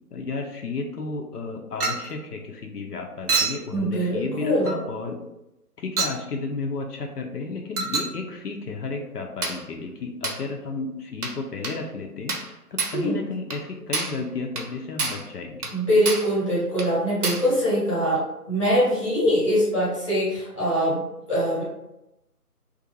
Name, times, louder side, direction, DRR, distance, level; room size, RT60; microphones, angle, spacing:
voice 1, 0.1-5.2 5.8-15.7, left 3 dB, 80° left, 2 dB, 0.6 m, -33 dB
Chink clink, 1.8-2.1 3.3-3.7 4.7-4.8 6.0-6.2 7.8-8.2 9.4-9.6 10.2-10.4 11.2-11.4 11.6-11.8 12.3-12.5 12.8-13.0 13.5-13.6 13.9-14.2 14.6-14.7 15.0-15.3 15.6-15.8 16.1-16.3 16.8-16.9 17.2-17.5, right 3 dB, 70° right, 0.7 m, -27 dB
voice 2, 3.7-4.8 12.9-13.2 15.7-18.2 18.5-21.6, equal, 20° left, -8 dB, 0.8 m, -23 dB
2.5 x 2.4 x 2.7 m, 0.90 s
figure-of-eight pair, 160°, 47 cm